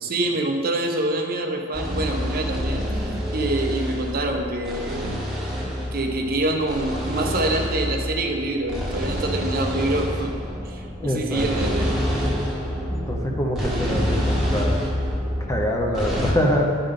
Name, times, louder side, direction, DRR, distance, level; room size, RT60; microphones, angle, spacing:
voice 1, 0.0-5.1 5.9-10.3 10.6-12.0, right 2 dB, 45° right, 3 dB, 0.7 m, -26 dB
sound 1, 1.7-16.3, equal, ahead, 1.2 m, -27 dB
voice 2, 11.0-11.5 12.9-14.8 15.5-16.7, equal, 15° left, 0 dB, 0.7 m, -24 dB
10.5 x 5.4 x 3.6 m, 2.3 s
head